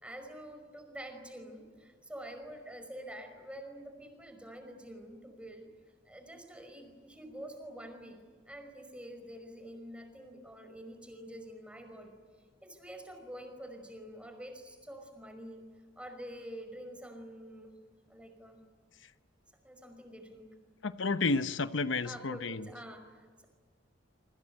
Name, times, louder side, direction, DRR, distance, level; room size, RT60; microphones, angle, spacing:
voice 1, 0.0-5.7 6.1-8.2 8.5-12.1 12.6-15.6 16.0-17.8 18.1-18.6 19.6-20.5 22.0-23.4, equal, 5° right, 6 dB, 5.2 m, -47 dB
voice 2, 20.8-22.7, left 3 dB, 90° left, 12 dB, 0.9 m, -31 dB
27.0 x 24.5 x 9.0 m, 1.5 s
head